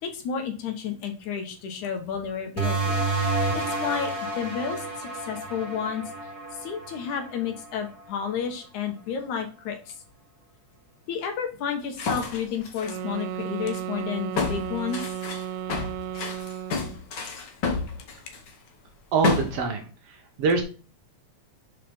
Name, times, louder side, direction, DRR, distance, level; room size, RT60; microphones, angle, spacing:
voice 1, 0.0-3.0 3.5-6.1 6.6-9.9 11.1-15.0, left 7 dB, 75° left, 4 dB, 2.7 m, -31 dB
sound 1, 2.6-7.8, right 3 dB, 20° right, 0.9 m, -29 dB
sound 2, 12.0-13.0 13.7-13.8 14.3-18.5 19.2-19.6, left 4 dB, 55° left, 1.2 m, -29 dB
sound 3, 12.8-17.1, right 10 dB, 85° right, 2.0 m, -34 dB
voice 2, 19.1-20.6, right 4 dB, 60° right, 4 dB, 1.9 m, -25 dB
5.7 x 5.0 x 5.2 m, 0.37 s
omnidirectional pair, 3.5 m